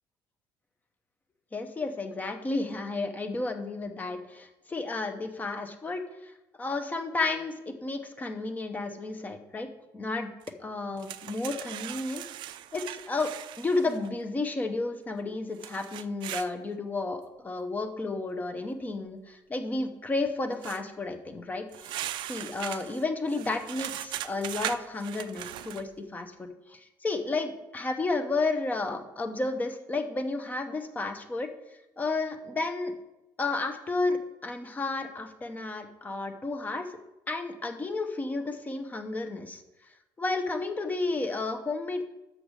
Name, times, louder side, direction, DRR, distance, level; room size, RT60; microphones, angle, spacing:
voice 1, 1.5-6.3 6.6-9.7 9.9-10.3 10.6-12.3 12.7-13.3 13.6-22.0 22.3-31.5 32.0-32.9 33.4-36.9 37.3-39.6 40.2-42.0, left 3 dB, 20° left, 7 dB, 0.8 m, -32 dB
sound 1, 10.5-10.6 11.0-14.1 15.6-16.5 20.6-20.8 21.7-25.9, right 13 dB, 70° right, 0.4 m, -39 dB
6.6 x 6.4 x 6.3 m, 0.95 s
cardioid pair, 140°, 8 cm